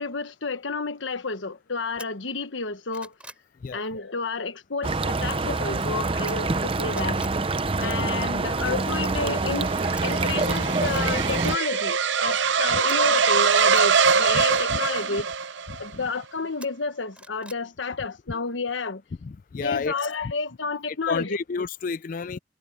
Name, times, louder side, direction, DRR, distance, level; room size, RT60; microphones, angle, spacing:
voice 1, 0.0-3.1 3.7-7.2 7.8-9.8 10.0-15.3 15.8-19.0 19.6-21.4, left 4 dB, 75° left, 1.2 m, -30 dB
sound 1, 2.0-2.1 2.6-3.5 6.3-6.6 6.9-7.4 10.0-10.1 10.6-11.1 12.9-13.9 16.6-17.6 18.0-18.1, right 2 dB, 5° right, 3.0 m, -44 dB
sound 2, 4.8-11.6, right 3 dB, 30° right, 0.7 m, -26 dB
sound 3, 8.8-15.9, right 6 dB, 70° right, 0.8 m, -23 dB
voice 2, 15.7-16.0 19.2-20.1 20.9-22.4, left 5 dB, 45° left, 0.3 m, -31 dB
head